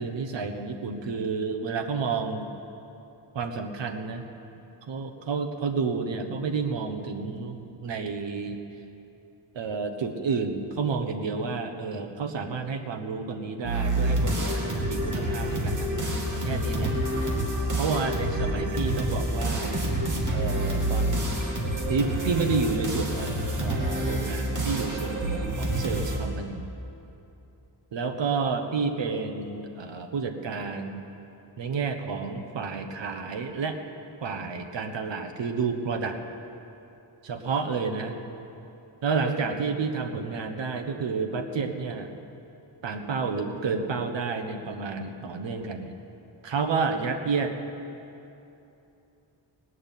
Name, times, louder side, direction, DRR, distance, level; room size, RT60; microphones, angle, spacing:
voice 1, 0.0-2.5 3.3-4.3 4.9-8.6 9.5-16.9 17.8-19.8 20.3-21.3 21.9-26.7 27.9-31.0 31.6-33.8 34.2-36.2 37.2-38.2 39.0-42.1 42.8-46.0 46.4-47.5, right 4 dB, 75° right, 6 dB, 1.2 m, -30 dB
sound 1, 13.6-26.2, right 1 dB, 40° right, 2.3 m, -28 dB
19.0 x 6.3 x 9.1 m, 2.9 s
wide cardioid pair, 105°, 44 cm